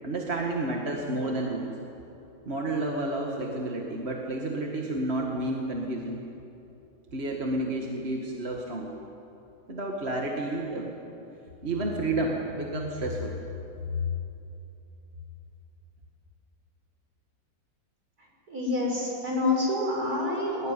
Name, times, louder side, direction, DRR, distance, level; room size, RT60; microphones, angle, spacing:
voice 1, 0.0-1.7 2.5-6.2 7.1-8.9 9.7-10.9 11.6-13.3 13.9-14.0, right 1 dB, 35° right, -1 dB, 2.0 m, -30 dB
voice 2, 18.5-20.7, left 2 dB, 50° right, -1 dB, 6.0 m, -27 dB
20.0 x 20.0 x 9.8 m, 2.9 s
omnidirectional pair, 2.1 m